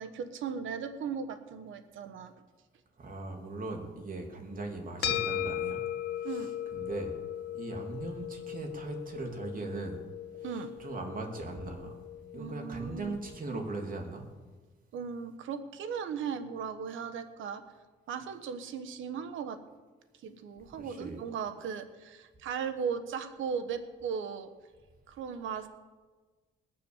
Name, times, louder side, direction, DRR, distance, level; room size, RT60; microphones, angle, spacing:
voice 1, 0.0-2.3 6.2-6.5 10.4-10.7 12.4-13.1 14.9-17.6 18.1-19.6 20.2-24.5 25.1-25.7, right 6 dB, 80° right, 9 dB, 1.3 m, -37 dB
voice 2, 3.0-5.8 6.2-7.1 7.5-10.0 10.4-12.0 12.3-14.2 20.7-21.2, right 3 dB, 45° right, 2 dB, 3.1 m, -39 dB
sound 1, 5.0-13.6, left 10 dB, 60° left, 1.4 m, -38 dB
20.5 x 6.9 x 7.2 m, 1.3 s
cardioid pair, 90°, 20 cm